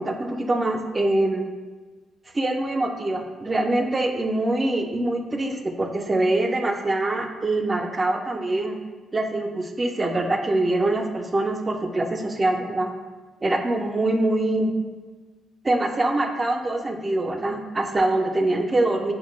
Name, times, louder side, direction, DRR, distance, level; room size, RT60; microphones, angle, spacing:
voice 1, 0.0-1.5 2.3-8.8 9.1-12.9 13.4-14.7 15.6-19.1, right 2 dB, 25° right, 4 dB, 0.4 m, -24 dB
4.3 x 2.1 x 3.0 m, 1.3 s
cardioid pair, 90°, 0 cm